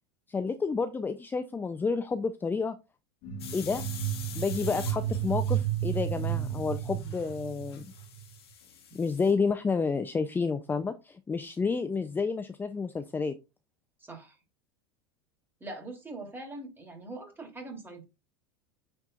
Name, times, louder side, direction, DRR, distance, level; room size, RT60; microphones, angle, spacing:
voice 1, 0.3-2.8 3.5-3.8 4.3-7.9 8.9-13.3, left 4 dB, 15° left, 0.6 m, -30 dB
sound 1, 3.2-8.3, right 11 dB, 55° left, 2.4 m, -32 dB
sound 2, 3.4-9.3, left 8 dB, 85° left, 2.0 m, -47 dB
voice 2, 14.0-14.4 15.6-18.0, right 2 dB, 15° right, 3.3 m, -42 dB
9.5 x 4.5 x 2.5 m
hypercardioid pair, 95°, 13 cm